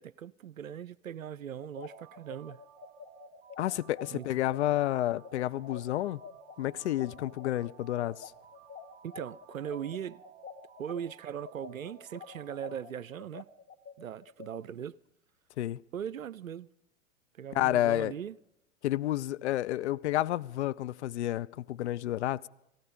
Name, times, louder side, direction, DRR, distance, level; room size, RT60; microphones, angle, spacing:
voice 1, 0.0-2.6 4.1-4.3 9.0-10.2 10.8-13.5 14.0-15.0 15.9-16.7 17.4-18.4, right 9 dB, 90° right, 0.5 m, -39 dB
sound 1, 1.6-11.0 11.4-14.5, left 7 dB, 25° left, 1.1 m, -48 dB
sound 2, 1.8-12.9, right 9 dB, 25° right, 0.9 m, -56 dB
voice 2, 3.6-6.2 6.6-8.3 15.6-15.8 17.5-18.1 18.8-22.5, left 14 dB, 60° left, 0.6 m, -30 dB
17.5 x 16.0 x 5.1 m
figure-of-eight pair, 95°, 39 cm